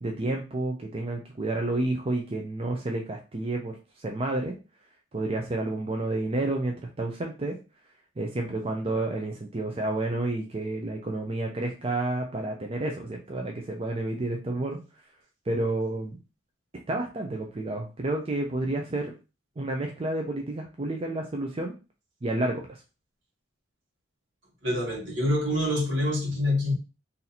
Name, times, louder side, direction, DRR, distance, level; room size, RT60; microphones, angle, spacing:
voice 1, 0.0-3.8 4.0-4.5 5.1-7.5 8.2-14.8 15.5-16.2 16.9-19.1 19.6-21.7 22.2-22.8, right 2 dB, 30° right, 1 dB, 0.5 m, -30 dB
voice 2, 24.6-26.7, left 1 dB, 70° right, -1 dB, 1.3 m, -26 dB
2.8 x 2.7 x 4.0 m, 0.30 s
head